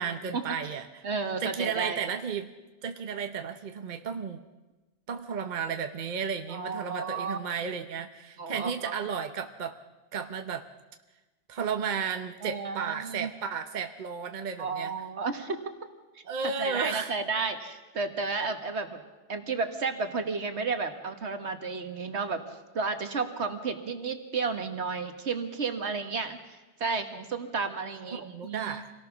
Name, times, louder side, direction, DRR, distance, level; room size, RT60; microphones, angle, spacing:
voice 1, 0.0-0.9 1.4-2.5 2.8-4.4 5.1-9.8 10.1-10.7 11.5-14.9 16.2-17.1 28.1-28.9, right 6 dB, 45° right, 7 dB, 1.0 m, -33 dB
voice 2, 1.0-2.0 6.5-7.4 8.4-8.9 12.4-13.3 14.6-15.7 16.2-19.0 19.3-28.8, right 4 dB, 70° right, 7 dB, 1.8 m, -32 dB
26.5 x 18.0 x 6.0 m, 1.2 s
omnidirectional pair, 1.2 m